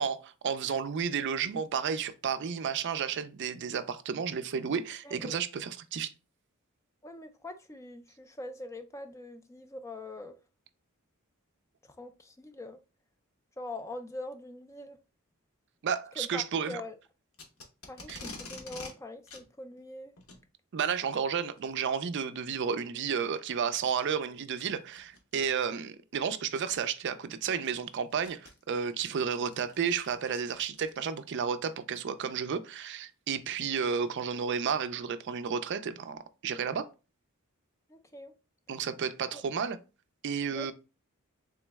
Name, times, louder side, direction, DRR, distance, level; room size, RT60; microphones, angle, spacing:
voice 1, 0.0-6.1 15.8-16.8 18.1-18.2 20.7-36.9 38.7-39.8 40.2-40.7, right 6 dB, 55° right, 0.4 m, -32 dB
voice 2, 5.0-5.4 7.0-10.4 12.0-12.8 13.6-15.0 16.2-17.0 17.9-20.1 37.9-38.3 39.3-39.4 40.5-40.7, left 2 dB, 15° left, 0.3 m, -43 dB
Packing tape duct tape, 17.3-18.9 19.3-19.4 20.2-20.4 21.6-21.8 22.5-22.6 23.2-23.3 24.9-25.2 26.3-26.4 26.7-26.8 27.3-31.2, left 3 dB, 80° left, 1.0 m, -47 dB
3.7 x 3.0 x 3.3 m
head